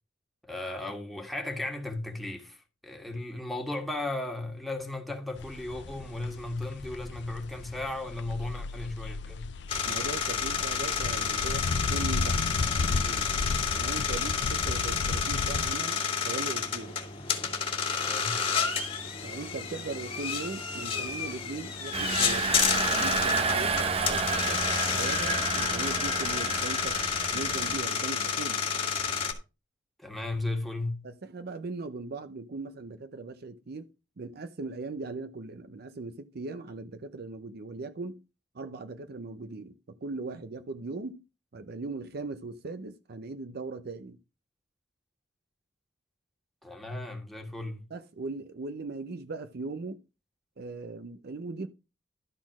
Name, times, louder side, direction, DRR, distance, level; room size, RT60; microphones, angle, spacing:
voice 1, 0.4-9.5 17.2-17.3 18.0-18.4 30.0-31.0 46.6-47.9, left 2 dB, ahead, 1.8 m, -35 dB
sound 1, 5.4-15.7, left 3 dB, 70° left, 0.5 m, -34 dB
sound 2, 9.7-29.3, left 6 dB, 30° left, 2.1 m, -30 dB
voice 2, 9.8-12.4 12.8-13.3 13.7-17.0 19.2-27.0 27.3-28.6 31.0-33.9 34.2-38.2 38.5-41.2 41.5-44.2 47.9-50.0 50.6-51.7, right 3 dB, 60° right, 0.6 m, -39 dB
Engine, 21.9-27.8, right 3 dB, 35° right, 0.9 m, -30 dB
12.0 x 4.2 x 5.9 m
head